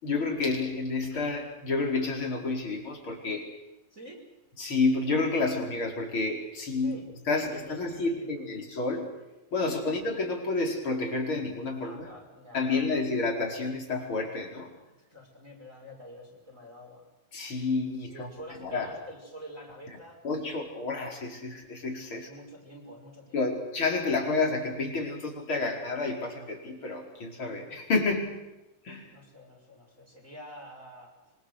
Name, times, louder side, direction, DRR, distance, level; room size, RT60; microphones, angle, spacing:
voice 1, 0.0-3.5 4.6-7.0 7.3-9.1 9.5-12.1 12.5-14.7 17.3-18.3 18.6-18.9 20.2-22.3 23.3-28.4 28.9-29.1, left 3 dB, 35° left, 1 dB, 5.5 m, -30 dB
voice 2, 3.9-4.2 6.8-8.5 11.8-13.0 15.1-17.1 18.0-20.2 22.1-23.6 29.1-31.1, equal, 20° right, -2 dB, 6.0 m, -47 dB
26.5 x 25.5 x 6.6 m, 1.0 s
omnidirectional pair, 4.3 m